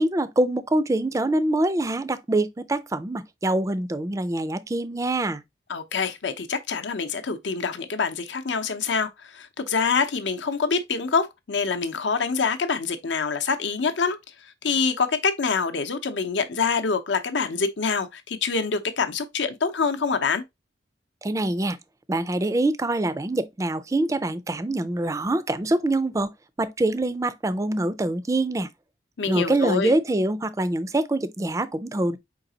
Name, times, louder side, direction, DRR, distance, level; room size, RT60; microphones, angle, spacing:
voice 1, 0.0-5.4 21.2-21.8 22.1-26.3 26.6-28.7 29.3-32.2, right 1 dB, 15° right, 0.3 m, -24 dB
voice 2, 5.7-14.2 14.6-20.4 29.2-29.9, left 5 dB, 75° left, 0.7 m, -25 dB
4.8 x 3.9 x 2.7 m
head